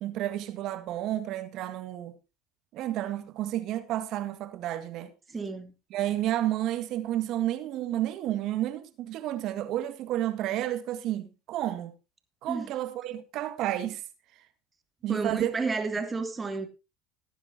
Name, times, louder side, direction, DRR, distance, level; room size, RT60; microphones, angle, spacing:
voice 1, 0.0-2.2 2.7-5.1 5.9-11.9 12.4-14.0 15.0-15.5, right 13 dB, 55° right, 1.8 m, -31 dB
voice 2, 5.3-5.7 12.5-12.7 15.1-16.7, right 4 dB, 20° right, 2.8 m, -31 dB
19.0 x 9.8 x 2.8 m
hypercardioid pair, 80°, 0 cm